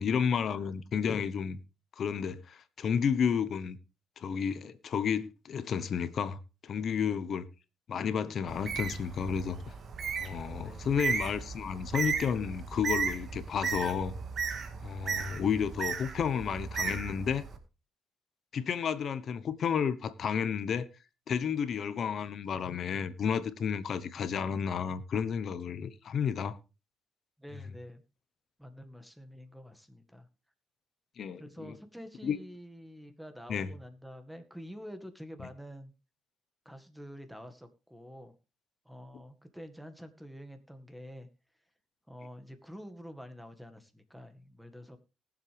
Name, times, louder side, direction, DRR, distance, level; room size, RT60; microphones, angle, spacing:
voice 1, 0.0-1.6 2.0-3.8 4.2-7.5 7.9-9.6 10.2-14.1 14.8-17.4 18.5-20.9 21.3-26.6 31.2-31.7 32.2-32.4 33.5-33.7, left 7 dB, 60° left, 1.0 m, -31 dB
Bird, 8.5-17.6, right 5 dB, 50° right, 1.9 m, -35 dB
voice 2, 10.6-11.0 27.4-28.0 28.6-30.3 31.4-35.9 36.7-38.3 38.9-41.3 42.1-45.0, equal, ahead, 1.9 m, -47 dB
19.5 x 7.5 x 3.4 m
cardioid pair, 90°, 0 cm